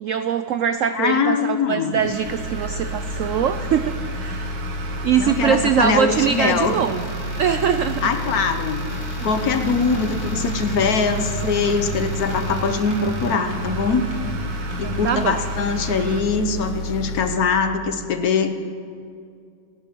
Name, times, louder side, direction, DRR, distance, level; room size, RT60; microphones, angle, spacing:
voice 1, 0.0-4.6 5.0-7.0 7.4-8.0 9.2-9.3 14.8-15.4, right 8 dB, 80° right, 11 dB, 0.7 m, -22 dB
voice 2, 0.9-2.1 5.2-6.8 8.0-8.8 9.2-14.0 14.8-18.5, left 5 dB, 60° left, 8 dB, 1.3 m, -22 dB
sound 1, 1.9-16.2, right 5 dB, 60° right, 1.6 m, -35 dB
sound 2, 2.2-17.3, left 2 dB, 85° left, 2.4 m, -30 dB
sound 3, 9.3-9.6 9.9-10.2 10.5-10.8 11.1-11.4 11.7-12.0 12.3-12.6 12.9-13.2 13.5-13.8 14.1-14.4 14.7-15.0, left 1 dB, 20° left, 3.3 m, -34 dB
26.5 x 11.5 x 4.5 m, 2.3 s
omnidirectional pair, 1.9 m